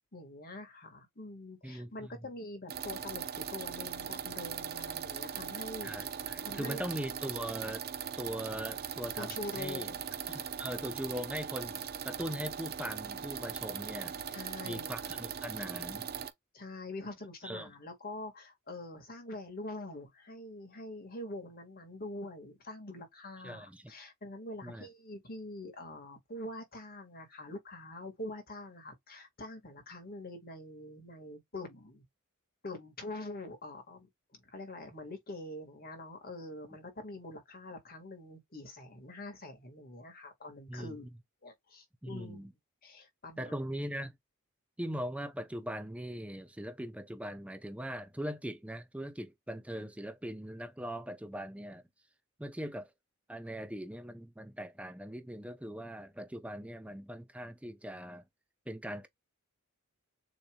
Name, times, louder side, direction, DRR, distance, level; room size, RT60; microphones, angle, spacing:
voice 1, 0.1-5.9 6.4-6.8 9.2-10.5 14.3-14.9 16.5-32.0 32.6-41.1 41.4-42.5 42.8-43.6, left 2 dB, 45° left, 1.8 m, -45 dB
voice 2, 1.6-2.1 5.8-7.9 8.2-9.9 10.3-14.4 14.6-16.1 17.4-17.7 23.4-23.9 24.6-24.9 40.7-41.0 42.0-42.5 43.4-44.1 44.8-51.8 52.4-52.9 53.3-58.2 58.7-59.1, equal, 5° right, 0.6 m, -40 dB
sound 1, 2.7-16.3, right 8 dB, 45° right, 0.7 m, -40 dB
6.9 x 3.2 x 2.3 m
head